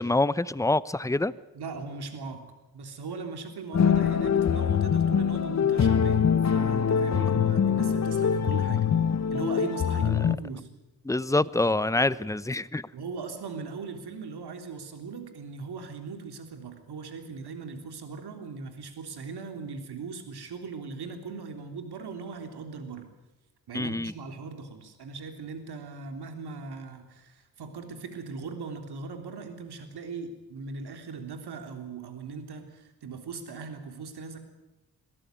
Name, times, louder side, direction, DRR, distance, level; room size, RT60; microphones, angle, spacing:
voice 1, 0.0-1.3 11.0-12.8 23.7-24.1, left 2 dB, 10° left, 18 dB, 0.7 m, -26 dB
voice 2, 1.5-2.5 2.7-6.2 6.5-8.9 9.3-10.7 12.9-23.1 23.7-34.4, right 4 dB, 75° right, 6 dB, 3.5 m, -39 dB
sound 1, 3.7-10.4, left 7 dB, 40° left, 1.1 m, -24 dB
23.0 x 14.0 x 9.3 m, 1.1 s
cardioid pair, 65°, 40 cm